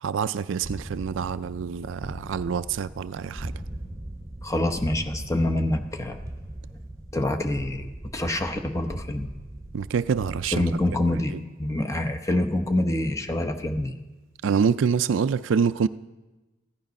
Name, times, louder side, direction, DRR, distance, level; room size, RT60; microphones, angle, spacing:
voice 1, 0.0-3.5 9.7-10.6 14.4-15.9, right 6 dB, 65° right, 0.4 m, -26 dB
sound 1, 0.6-11.3, right 1 dB, 15° right, 1.1 m, -39 dB
voice 2, 4.4-6.2 7.1-9.3 10.5-13.9, left 1 dB, 15° left, 0.9 m, -26 dB
15.0 x 11.0 x 5.3 m
head